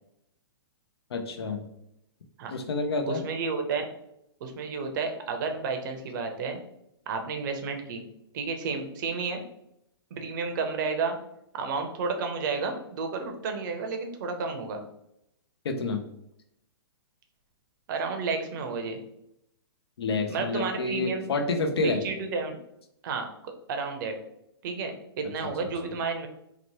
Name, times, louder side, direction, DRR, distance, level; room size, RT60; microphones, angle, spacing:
voice 1, 1.1-1.6 2.5-3.2 15.6-16.0 20.0-22.0, left 3 dB, 75° left, 5 dB, 0.5 m, -28 dB
voice 2, 3.1-3.9 4.4-6.6 7.1-8.0 8.3-9.4 10.1-11.2 11.5-14.8 17.9-19.0 20.3-21.2 22.0-22.6 23.0-24.2 24.6-26.3, right 4 dB, 50° right, 5 dB, 0.6 m, -31 dB
2.8 x 2.1 x 3.0 m, 0.79 s
hypercardioid pair, 130°, 13 cm